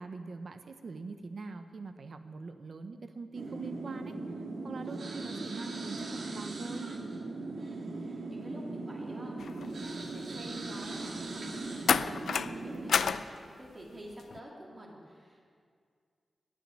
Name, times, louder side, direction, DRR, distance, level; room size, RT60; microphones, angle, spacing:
voice 1, 0.0-4.2 4.6-6.9, right 4 dB, 55° right, 8 dB, 0.8 m, -43 dB
sound 1, 3.3-13.0, right 2 dB, 70° right, 1.8 m, -39 dB
voice 2, 4.8-5.1 7.6-9.4 9.7-15.4, right 1 dB, 30° right, -3 dB, 2.7 m, -49 dB
sound 2, 9.4-9.7 11.9-12.6 12.9-13.3 14.2-14.4, left 6 dB, 85° left, 0.4 m, -29 dB
18.5 x 6.2 x 10.0 m, 2.1 s
wide cardioid pair, 135°, 0 cm